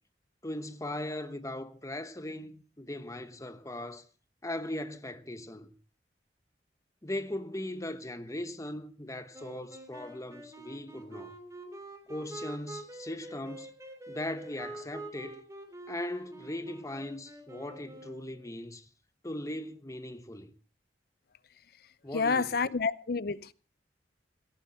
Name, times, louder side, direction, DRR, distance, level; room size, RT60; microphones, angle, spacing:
voice 1, 0.4-4.0 4.4-5.7 7.0-11.4 12.1-13.7 14.1-15.4 15.9-18.9 19.2-20.5 22.0-22.6, left 1 dB, 20° left, 1.0 m, -39 dB
sound 1, 9.3-18.5, right 1 dB, 20° right, 2.9 m, -46 dB
voice 2, 22.1-23.5, left 4 dB, 60° left, 0.6 m, -29 dB
17.5 x 14.0 x 4.3 m
head